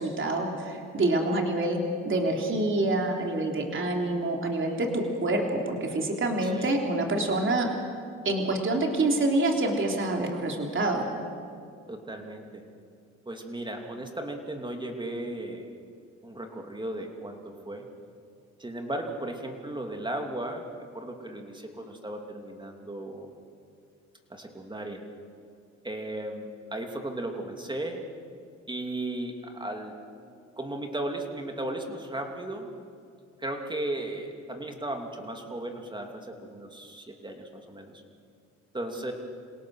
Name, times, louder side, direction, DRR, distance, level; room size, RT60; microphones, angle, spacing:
voice 1, 0.0-7.7 8.3-11.1, right 2 dB, 40° right, 1 dB, 3.5 m, -27 dB
voice 2, 6.4-6.7 11.9-12.6 13.3-15.7 16.2-17.9 18.6-20.6 20.9-23.3 24.3-25.0 25.8-28.0 28.7-29.9 30.6-32.7 33.4-37.9 38.7-39.1, right 1 dB, 15° right, 3 dB, 2.9 m, -36 dB
27.5 x 17.5 x 6.6 m, 2.4 s
cardioid pair, 90°, 30 cm